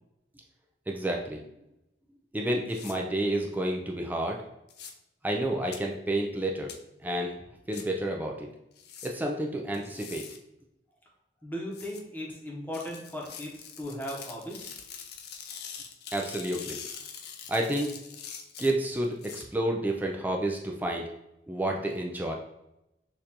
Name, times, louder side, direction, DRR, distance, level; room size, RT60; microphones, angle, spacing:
voice 1, 0.9-1.4 2.3-4.4 5.2-6.7 7.0-7.3 7.7-8.5 9.0-10.3 16.1-16.8 17.5-17.9 18.6-21.1 21.5-22.3, right 1 dB, 10° right, 1 dB, 0.3 m, -30 dB
sound 1, 2.7-2.9 4.7-4.9 5.7-5.8 6.7-6.8 7.7-7.8 8.8-9.1 9.7-10.4 11.7-12.0 12.7-19.4, left 7 dB, 60° left, 0.5 m, -44 dB
voice 2, 11.4-14.7, equal, 10° left, -3 dB, 0.9 m, -37 dB
6.5 x 2.5 x 2.8 m, 0.85 s
head